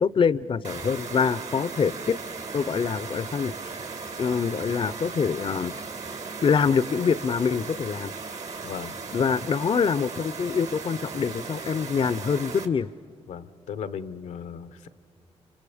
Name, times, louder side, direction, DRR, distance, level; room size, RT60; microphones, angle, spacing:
voice 1, 0.0-2.2 2.5-3.5 4.2-5.7 6.4-8.1 9.1-12.9, left 6 dB, 45° left, 18 dB, 0.5 m, -25 dB
sound 1, 0.6-12.7, right 4 dB, 70° right, 2.1 m, -37 dB
voice 2, 8.6-9.0 13.3-14.9, left 7 dB, 90° left, 14 dB, 0.8 m, -36 dB
29.5 x 27.5 x 5.0 m, 2.6 s
cardioid pair, 55°, 12 cm